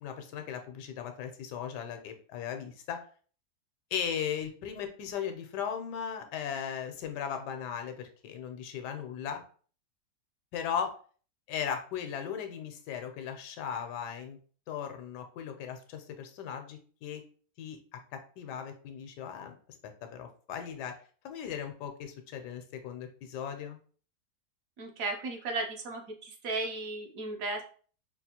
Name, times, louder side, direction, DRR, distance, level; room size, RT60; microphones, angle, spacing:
voice 1, 0.0-3.0 3.9-9.4 10.5-10.9 11.5-14.4 14.7-17.2 17.6-19.5 20.0-21.0 21.2-23.8, left 8 dB, 90° left, 6 dB, 1.3 m, -37 dB
voice 2, 24.8-27.6, right 3 dB, 65° right, 2 dB, 1.0 m, -35 dB
5.1 x 2.4 x 2.8 m, 0.43 s
omnidirectional pair, 1.7 m